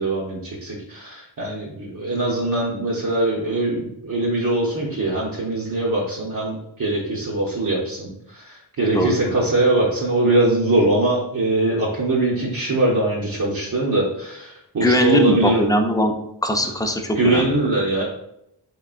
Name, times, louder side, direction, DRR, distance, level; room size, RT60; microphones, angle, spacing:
voice 1, 0.0-15.7 17.1-18.0, right 2 dB, 50° right, -5 dB, 0.8 m, -22 dB
voice 2, 8.9-9.3 14.8-16.1 16.4-17.5, equal, 10° left, 4 dB, 0.4 m, -20 dB
3.8 x 3.4 x 2.4 m, 0.78 s
wide cardioid pair, 60°, 44 cm